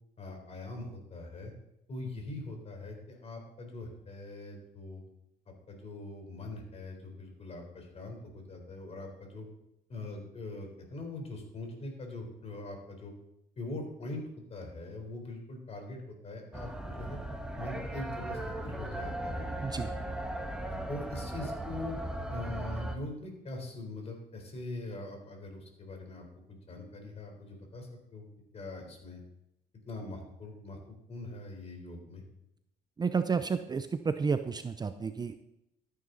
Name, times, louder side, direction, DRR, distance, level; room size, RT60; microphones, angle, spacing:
voice 1, 0.2-1.5 1.9-5.0 5.5-9.5 9.9-13.1 13.6-14.2 14.5-17.2 17.6-19.5 20.7-21.9 22.3-28.3 28.5-29.2 29.9-32.2, left 2 dB, 40° left, 3 dB, 3.9 m, -42 dB
sound 1, 16.5-23.0, right 1 dB, 5° right, 1.4 m, -37 dB
voice 2, 19.6-19.9 33.0-35.4, right 5 dB, 25° right, 10 dB, 0.6 m, -31 dB
13.5 x 9.4 x 4.0 m, 0.83 s
cardioid pair, 110°, 17 cm